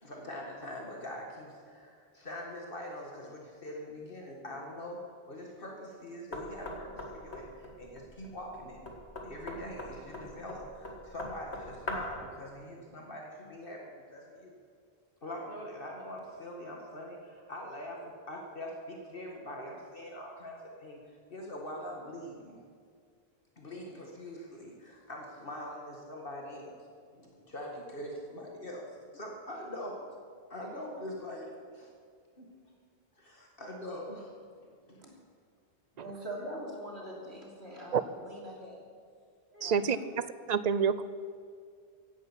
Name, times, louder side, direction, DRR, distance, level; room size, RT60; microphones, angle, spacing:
voice 1, 0.0-8.9 9.2-14.5 15.2-22.6 23.6-26.7 27.1-28.8 29.1-30.1 30.5-31.9 32.4-32.5 33.2-34.4, left 1 dB, 60° left, 0 dB, 2.0 m, -43 dB
Knock, 6.3-12.2, left 1 dB, 85° left, 2.3 m, -42 dB
voice 2, 36.0-38.8 39.5-40.0, right 1 dB, 85° right, -1 dB, 3.4 m, -43 dB
voice 3, 39.6-41.0, right 7 dB, 50° right, 15 dB, 0.6 m, -28 dB
16.5 x 11.0 x 7.4 m, 2.1 s
omnidirectional pair, 1.1 m